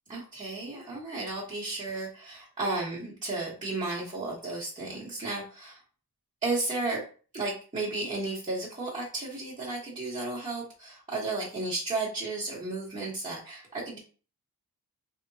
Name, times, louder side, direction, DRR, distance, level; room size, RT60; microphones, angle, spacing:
voice 1, 0.1-5.8 6.4-7.0 7.3-14.0, right 2 dB, 20° right, -10 dB, 1.2 m, -33 dB
3.3 x 2.9 x 2.7 m, 0.37 s
wide cardioid pair, 115°, 37 cm